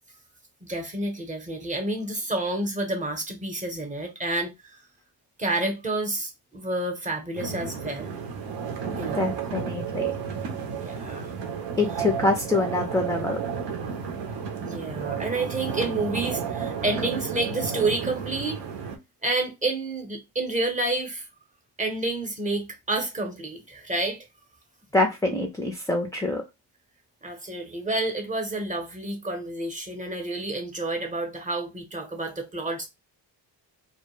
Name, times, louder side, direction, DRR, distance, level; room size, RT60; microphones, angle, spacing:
voice 1, 0.6-4.8 5.4-8.2 8.9-9.3 10.7-11.3 14.6-18.6 19.2-21.3 21.8-24.2 27.2-32.9, right 2 dB, 20° right, 0.8 m, -29 dB
sound 1, 7.4-19.0, right 7 dB, 75° right, 0.7 m, -32 dB
voice 2, 9.1-10.1 11.8-13.4 24.9-26.4, left 2 dB, 10° left, 0.4 m, -25 dB
2.2 x 2.1 x 3.0 m
cardioid pair, 90°, 42 cm